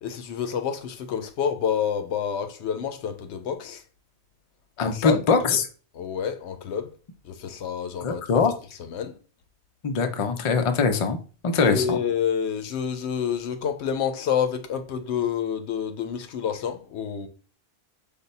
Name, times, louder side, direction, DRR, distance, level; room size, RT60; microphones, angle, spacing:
voice 1, 0.0-3.8 4.8-5.2 5.5-5.6 6.0-6.9 7.2-8.4 8.8-9.2 11.6-17.3, left 8 dB, 80° left, 0.9 m, -28 dB
voice 2, 4.8-5.7 8.0-8.5 9.8-11.2 11.4-12.0, left 5 dB, 45° left, 0.4 m, -22 dB
5.2 x 2.2 x 4.0 m
omnidirectional pair, 1.1 m